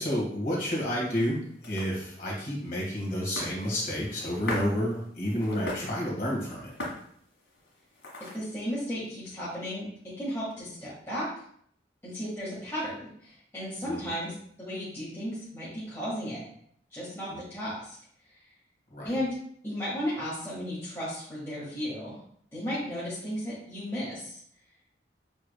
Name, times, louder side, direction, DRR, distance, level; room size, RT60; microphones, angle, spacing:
voice 1, 0.0-6.7 13.8-14.1 17.3-17.4 18.9-19.2, equal, 45° left, -4 dB, 1.8 m, -30 dB
sound 1, 0.5-8.6, left 1 dB, 90° left, 1.5 m, -42 dB
voice 2, 8.2-11.3 12.0-16.4 16.9-18.0 19.0-19.3 19.6-22.2 22.5-24.4, equal, 15° left, -10 dB, 1.5 m, -34 dB
7.2 x 3.3 x 2.2 m, 0.64 s
head